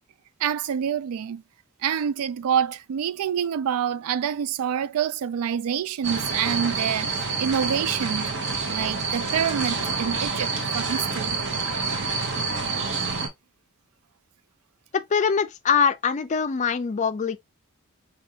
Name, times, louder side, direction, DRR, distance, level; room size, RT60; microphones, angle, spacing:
voice 1, 0.4-1.4 1.8-8.3 8.7-11.4 12.9-13.0, right 8 dB, 75° right, 0.3 m, -27 dB
sound 1, 6.0-13.3, right 4 dB, 55° right, 0.8 m, -27 dB
voice 2, 14.9-17.4, left 6 dB, 35° left, 0.4 m, -23 dB
4.0 x 2.6 x 2.7 m
head